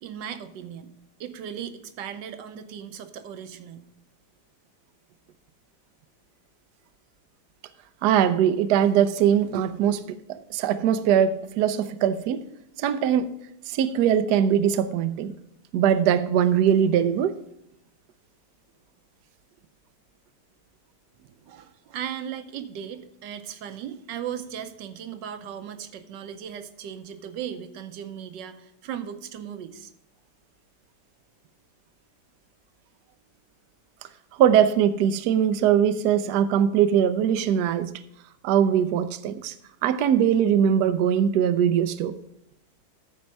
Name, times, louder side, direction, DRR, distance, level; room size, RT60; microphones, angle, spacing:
voice 1, 0.0-0.9 1.2-3.8 21.5-29.9, right 9 dB, 90° right, 10 dB, 1.4 m, -37 dB
voice 2, 8.0-12.4 12.8-13.3 13.7-15.3 15.7-17.3 34.4-37.9 38.4-39.5 39.8-42.1, right 9 dB, 75° right, 11 dB, 1.1 m, -21 dB
13.0 x 4.5 x 5.2 m, 0.78 s
omnidirectional pair, 1.9 m